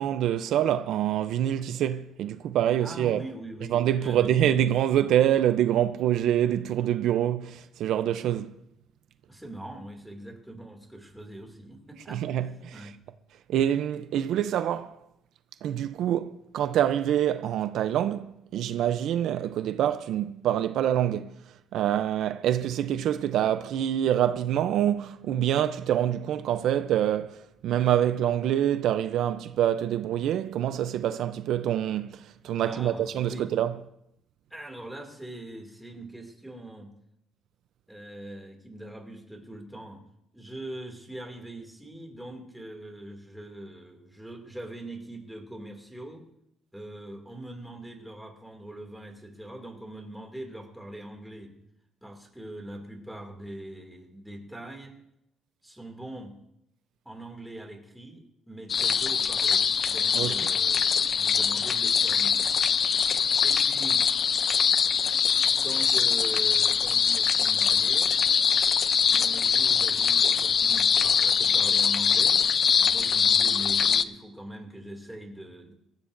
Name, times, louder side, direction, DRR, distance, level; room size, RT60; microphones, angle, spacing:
voice 1, 0.0-3.2 3.7-8.6 12.1-12.9 13.5-15.0 15.6-21.3 21.7-33.7 60.1-60.5, right 11 dB, 70° right, 0.5 m, -26 dB
voice 2, 2.8-4.3 9.3-12.2 12.7-13.0 32.6-33.5 34.5-36.9 37.9-40.0 40.3-46.2 46.7-51.5 52.0-55.0 55.6-56.4 57.0-62.4 63.4-64.1 65.6-68.2 69.1-75.7, right 1 dB, 5° right, 2.4 m, -42 dB
sound 1, 58.7-74.0, left 7 dB, 40° left, 0.5 m, -23 dB
24.5 x 14.5 x 2.6 m
cardioid pair, 140°, 0 cm